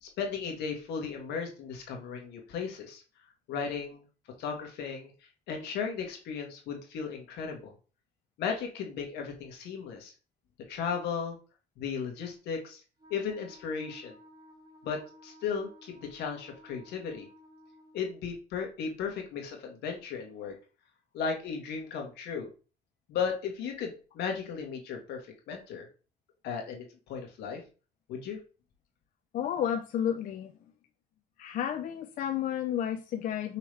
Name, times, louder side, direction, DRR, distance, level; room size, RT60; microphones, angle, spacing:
voice 1, 0.0-3.0 3.5-4.0 4.4-5.1 5.5-7.7 8.4-10.1 10.7-11.4 11.8-12.8 13.1-14.1 14.8-17.3 17.9-20.5 21.1-22.5 23.1-25.9 26.4-27.6 28.1-28.4, left 6 dB, 85° left, 2 dB, 1.4 m, -35 dB
Wind instrument woodwind instrument, 13.0-18.2, equal, 25° right, 1.0 m, -55 dB
voice 2, 29.3-30.5 31.4-33.6, left 9 dB, 55° left, 6 dB, 0.4 m, -31 dB
5.5 x 3.0 x 3.2 m, 0.34 s
cardioid pair, 110°, 17 cm